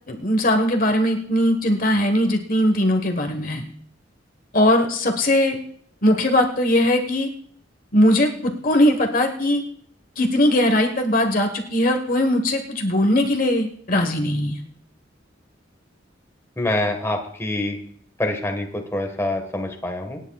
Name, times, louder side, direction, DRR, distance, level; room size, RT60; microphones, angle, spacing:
voice 1, 0.1-3.7 4.5-5.6 6.0-7.3 7.9-9.6 10.2-14.6, left 1 dB, 45° left, 4 dB, 1.3 m, -20 dB
voice 2, 16.6-17.8 18.2-20.2, left 1 dB, 15° left, 3 dB, 1.5 m, -25 dB
26.5 x 9.9 x 2.4 m, 0.63 s
head